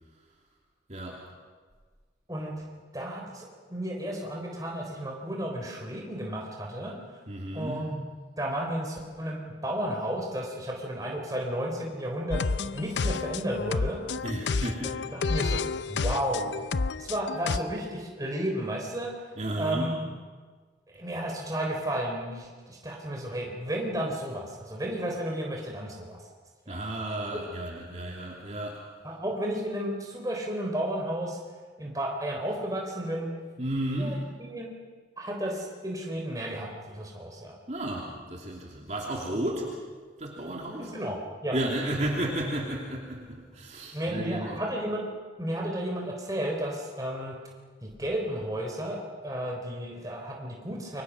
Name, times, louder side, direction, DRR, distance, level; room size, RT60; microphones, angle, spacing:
voice 1, 0.9-1.3 7.3-7.9 14.2-15.0 19.4-20.0 26.7-28.8 33.6-34.3 37.7-39.7 40.2-40.9 41.5-44.6, right 1 dB, 40° right, -2 dB, 3.0 m, -33 dB
voice 2, 2.9-6.9 7.5-8.0 8.4-12.5 12.7-14.0 14.6-14.7 15.1-15.6 15.9-16.4 17.0-19.1 19.6-20.0 20.9-26.2 26.7-26.8 27.3-27.4 29.0-31.4 31.8-33.3 34.0-34.7 35.2-37.6 40.8-41.2 41.4-41.5 43.9-45.1 45.4-47.3 47.8-51.0, right 1 dB, 20° right, 0 dB, 3.9 m, -33 dB
sound 1, 12.3-17.6, left 4 dB, 80° left, 0.6 m, -30 dB
29.0 x 23.5 x 6.2 m, 1.5 s
head